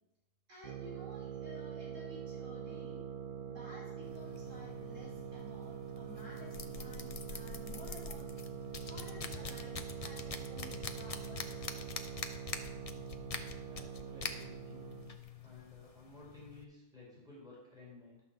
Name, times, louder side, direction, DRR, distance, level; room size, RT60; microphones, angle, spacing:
voice 1, 0.5-3.0 3.4-8.3 8.7-11.8, left 1 dB, 55° right, -6 dB, 4.6 m, -54 dB
sound 1, 0.6-15.2, right 8 dB, 75° right, 1.2 m, -44 dB
sound 2, 4.0-16.6, left 5 dB, 35° left, 0.6 m, -46 dB
voice 2, 13.6-14.9 15.4-18.2, left 3 dB, ahead, -5 dB, 4.1 m, -55 dB
11.5 x 5.9 x 7.2 m, 1.0 s
omnidirectional pair, 1.6 m